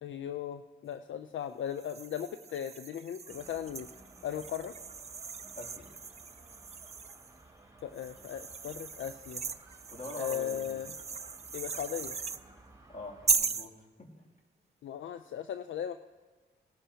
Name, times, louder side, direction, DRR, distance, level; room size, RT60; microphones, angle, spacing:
voice 1, 0.0-3.9 4.2-4.7 7.8-9.4 10.2-10.9 11.5-12.2 14.8-16.0, left 9 dB, 70° left, 10 dB, 0.5 m, -37 dB
sound 1, 1.8-7.3 7.9-12.4 13.3-13.7, right 5 dB, 30° right, 0.5 m, -37 dB
sound 2, 3.3-13.4, right 2 dB, 15° right, 3.0 m, -57 dB
voice 2, 5.5-5.9 9.9-10.9 12.9-13.7 14.0-14.1, left 1 dB, 40° left, -2 dB, 2.6 m, -44 dB
18.5 x 11.5 x 2.8 m, 1.3 s
cardioid pair, 50°, 21 cm